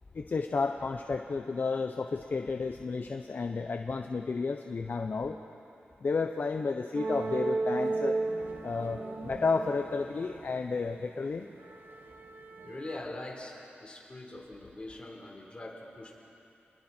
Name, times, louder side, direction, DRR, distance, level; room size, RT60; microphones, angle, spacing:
voice 1, 0.1-5.4 6.0-8.2 8.6-11.5, left 4 dB, 50° left, 5 dB, 0.8 m, -32 dB
sound 1, 6.9-11.0 11.5-13.0, right 3 dB, 60° right, 1.3 m, -35 dB
voice 2, 12.6-13.5 13.8-16.2, left 2 dB, 30° left, -1 dB, 4.2 m, -42 dB
30.0 x 21.0 x 4.5 m, 2.8 s
wide cardioid pair, 90°, 4 cm